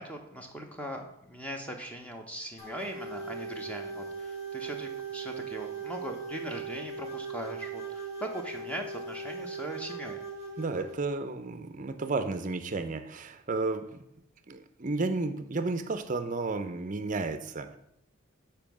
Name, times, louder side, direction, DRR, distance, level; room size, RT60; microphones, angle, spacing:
voice 1, 0.0-10.2, right 1 dB, 5° left, 3 dB, 0.9 m, -40 dB
sound 1, 2.6-11.0, right 4 dB, 30° left, 2.3 m, -39 dB
voice 2, 10.6-14.0 14.5-17.8, right 3 dB, 35° right, 11 dB, 0.5 m, -32 dB
7.4 x 4.6 x 6.1 m, 0.79 s
head